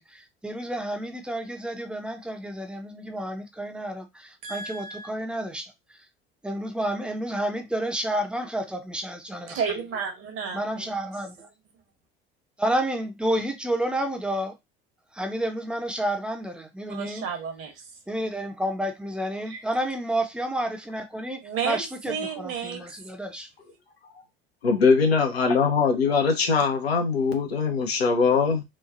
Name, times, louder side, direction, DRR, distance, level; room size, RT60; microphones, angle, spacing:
voice 1, 0.0-5.7 6.4-9.6 10.5-11.4 12.6-14.5 15.1-17.2 18.1-23.5, right 1 dB, 5° right, 0.6 m, -30 dB
voice 2, 4.4-5.1 9.5-11.0 11.4-11.5 16.9-17.7 19.5-19.6 21.4-22.8, right 6 dB, 45° right, 1.0 m, -32 dB
voice 3, 24.6-28.6, left 5 dB, 85° left, 0.7 m, -22 dB
3.1 x 2.3 x 2.4 m
figure-of-eight pair, 70°, 31 cm